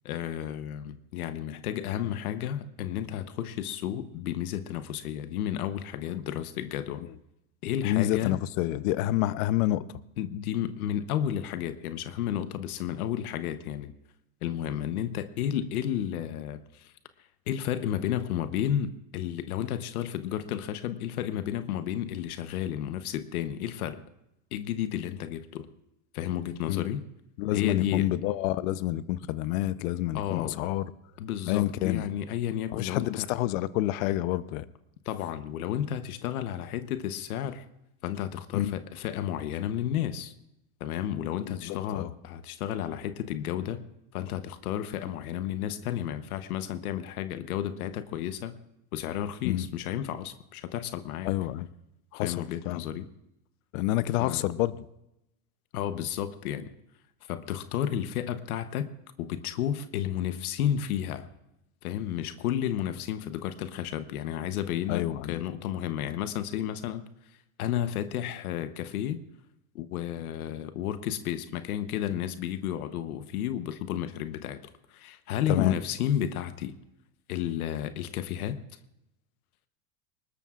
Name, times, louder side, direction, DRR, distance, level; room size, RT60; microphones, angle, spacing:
voice 1, 0.0-7.0 7.6-8.4 10.2-13.9 14.4-16.9 17.5-24.0 24.5-25.7 26.1-27.0 27.5-28.1 30.1-30.6 31.2-33.3 35.0-37.6 38.0-40.3 40.8-43.9 44.1-48.6 48.9-51.3 52.1-53.1 54.2-54.4 55.7-56.7 57.3-58.9 59.2-61.3 61.8-69.2 69.7-74.6 74.9-76.8 77.3-78.6, left 10 dB, 85° left, 11 dB, 1.0 m, -32 dB
voice 2, 7.8-9.8 26.7-26.9 27.4-30.9 31.5-32.1 32.7-34.6 38.5-38.7 41.5-42.1 49.4-49.7 51.2-51.7 52.1-52.4 52.7-52.8 53.7-54.8 64.9-65.4 75.5-75.7, left 15 dB, 65° left, 16 dB, 0.8 m, -28 dB
23.5 x 20.0 x 2.5 m, 0.87 s
supercardioid pair, 120°, 43 cm